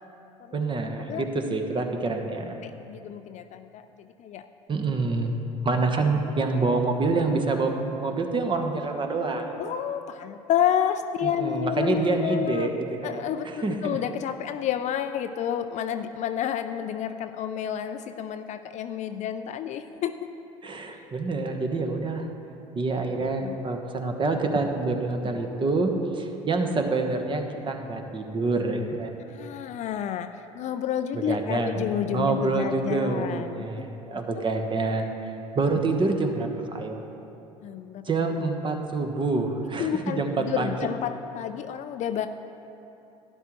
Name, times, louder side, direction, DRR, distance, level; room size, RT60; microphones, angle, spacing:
voice 1, 0.5-2.6 4.7-5.3 5.6-9.6 11.2-14.0 20.6-22.3 22.7-29.2 31.1-31.8 32.1-37.0 38.0-40.9, right 3 dB, 30° right, 4 dB, 1.1 m, -27 dB
voice 2, 2.6-4.5 9.6-12.7 13.0-20.2 23.4-23.6 29.2-30.3 30.5-33.8 34.4-34.5 37.6-38.1 39.8-42.3, left 9 dB, 45° left, 9 dB, 0.4 m, -30 dB
12.0 x 11.0 x 3.1 m, 2.9 s
hypercardioid pair, 65°, 18 cm